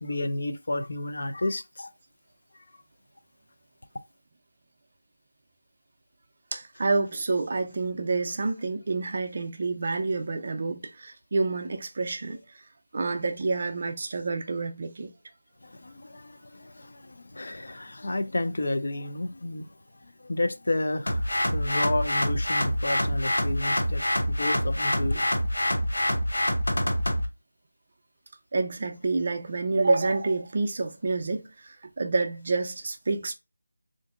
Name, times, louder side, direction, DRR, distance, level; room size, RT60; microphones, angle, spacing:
voice 1, 0.0-1.9 15.6-19.7 20.0-21.2 21.5-25.2, left 2 dB, 55° left, 0.4 m, -31 dB
voice 2, 6.5-12.4 12.9-15.1 28.5-33.3, right 3 dB, 35° right, 0.4 m, -28 dB
sound 1, 21.1-27.3, equal, 85° left, 0.8 m, -26 dB
3.6 x 2.5 x 2.4 m
figure-of-eight pair, 175°, 0 cm